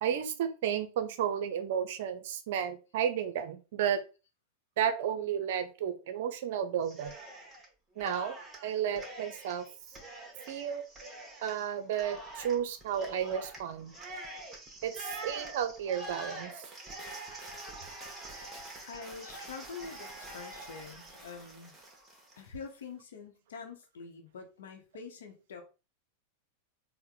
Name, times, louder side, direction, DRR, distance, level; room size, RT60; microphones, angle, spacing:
voice 1, 0.0-4.0 4.8-7.1 8.0-8.4 8.6-9.7 10.5-10.8 11.4-13.9 14.8-16.6, right 9 dB, 55° right, 9 dB, 0.5 m, -32 dB
Cheering, 6.8-7.7 8.0-22.5, right 2 dB, 15° right, 1.1 m, -46 dB
voice 2, 18.9-21.7 22.4-25.6, left 5 dB, 60° left, 4 dB, 0.8 m, -45 dB
4.2 x 2.1 x 3.6 m, 0.32 s
figure-of-eight pair, 90°, 0 cm